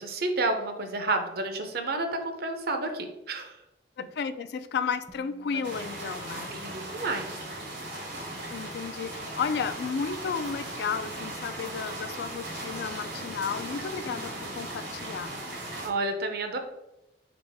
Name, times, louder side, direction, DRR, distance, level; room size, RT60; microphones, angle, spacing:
voice 1, 0.0-3.6 5.5-5.6 6.5-7.4 15.8-16.6, right 2 dB, 60° right, 6 dB, 0.6 m, -30 dB
voice 2, 4.0-6.5 8.5-15.3, left 6 dB, 65° left, 12 dB, 0.3 m, -33 dB
Bass guitar, 5.1-11.3, right 3 dB, 10° right, 0.4 m, -59 dB
sound 1, 5.6-15.9, right 1 dB, 80° right, 1.2 m, -38 dB
3.9 x 3.9 x 3.4 m, 0.94 s
head